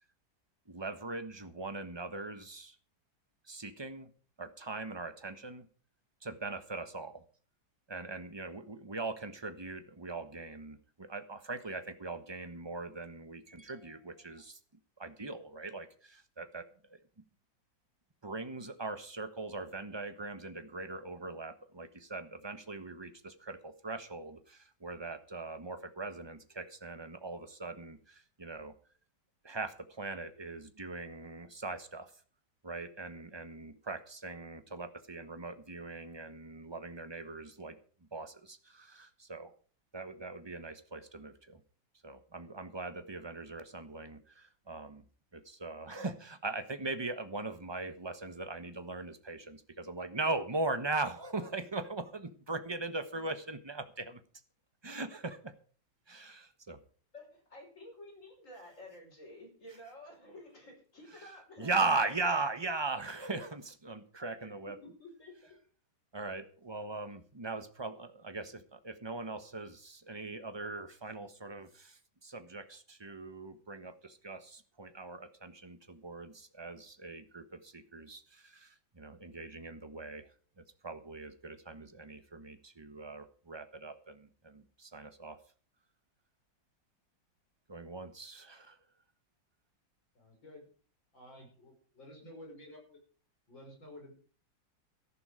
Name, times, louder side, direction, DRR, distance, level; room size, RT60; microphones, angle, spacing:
voice 1, 0.7-2.8 3.5-4.1 4.4-5.7 6.2-7.2 7.9-14.6 15.0-16.6 16.9-17.0 18.2-28.7 29.4-32.1 32.6-37.8 38.1-39.5 39.9-41.6 42.0-45.0 45.3-54.2 54.8-55.5 56.1-56.8 61.6-64.8 66.1-80.3 80.6-85.4 87.7-88.8, right 3 dB, 15° right, 9 dB, 1.1 m, -40 dB
voice 2, 57.1-62.4 64.6-65.6, left 1 dB, 40° left, 2 dB, 5.8 m, -51 dB
voice 3, 90.1-90.6 91.1-93.0 93.5-94.1, left 1 dB, 80° left, 1 dB, 6.6 m, -52 dB
14.5 x 11.0 x 5.0 m, 0.42 s
omnidirectional pair, 2.1 m